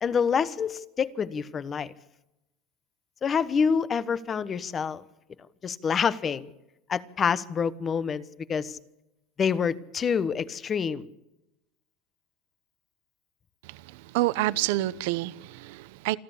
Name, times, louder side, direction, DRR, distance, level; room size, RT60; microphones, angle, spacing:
voice 1, 0.0-1.9 3.2-5.0 5.6-6.5 6.9-8.2 8.5-8.8 9.4-11.1, left 6 dB, 30° left, 1.1 m, -27 dB
voice 2, 13.6-16.2, right 17 dB, 80° right, 0.9 m, -28 dB
27.0 x 12.5 x 8.4 m
supercardioid pair, 125°, 0 cm